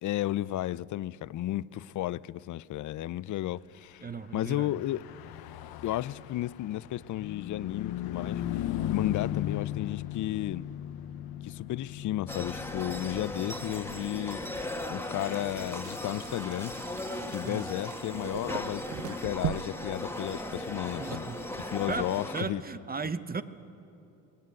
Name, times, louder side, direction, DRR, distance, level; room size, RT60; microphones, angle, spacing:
voice 1, 0.0-4.0 4.3-5.0 5.8-8.4 8.9-10.7 11.4-14.4 14.9-16.7 17.3-21.3 21.7-22.6, left 14 dB, 55° left, 0.5 m, -33 dB
voice 2, 4.0-4.8 17.4-17.7 21.0-21.4 21.9-23.4, right 4 dB, 25° right, 0.8 m, -36 dB
Car passing by / Truck, 4.4-18.1, left 12 dB, 75° left, 0.9 m, -38 dB
sound 1, 12.3-22.4, left 1 dB, 5° left, 1.7 m, -37 dB
sound 2, 15.2-22.1, right 15 dB, 55° right, 0.4 m, -42 dB
18.5 x 17.0 x 9.4 m
supercardioid pair, 75°, 37 cm